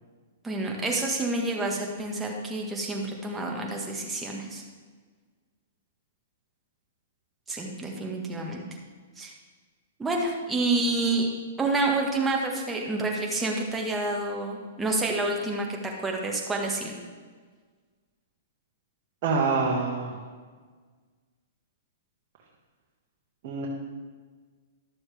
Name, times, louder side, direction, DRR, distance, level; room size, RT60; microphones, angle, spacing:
voice 1, 0.4-4.6 7.5-8.6 9.2-9.3 10.0-11.3 11.6-16.9, right 2 dB, 10° right, 0 dB, 1.6 m, -28 dB
voice 2, 19.2-20.2 23.4-23.7, right 4 dB, 45° right, -2 dB, 1.5 m, -26 dB
12.0 x 6.9 x 3.5 m, 1.5 s
hypercardioid pair, 135°, 0 cm